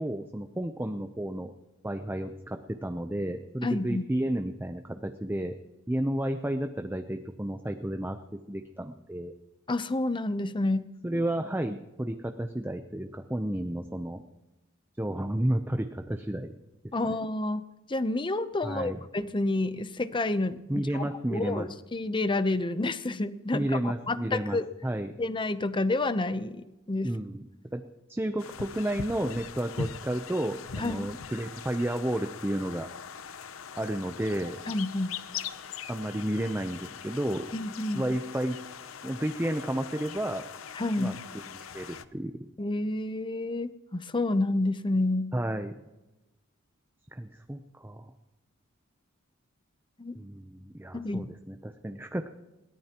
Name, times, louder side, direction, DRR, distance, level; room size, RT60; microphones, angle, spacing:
voice 1, 0.0-1.5 1.8-5.5 5.9-8.2 8.5-9.3 11.0-14.2 15.0-16.5 16.8-17.2 18.6-19.0 20.7-21.7 23.5-25.1 27.0-27.4 27.7-27.8 28.1-32.9 33.8-34.6 35.9-37.5 37.9-38.6 39.0-40.4 41.0-42.5 45.3-45.8 47.1-48.1 50.1-52.3, right 1 dB, 10° right, 6 dB, 0.6 m, -32 dB
voice 2, 3.6-4.0 9.7-10.9 16.9-17.6 17.9-23.8 24.1-24.7 25.2-27.1 30.8-31.1 34.7-35.1 37.5-38.0 40.8-41.2 42.6-45.3 50.0-50.2 50.9-51.3, left 2 dB, 25° left, 13 dB, 0.7 m, -29 dB
sound 1, 28.4-42.0, left 6 dB, 85° left, 0.7 m, -41 dB
22.0 x 17.5 x 3.0 m, 1.0 s
head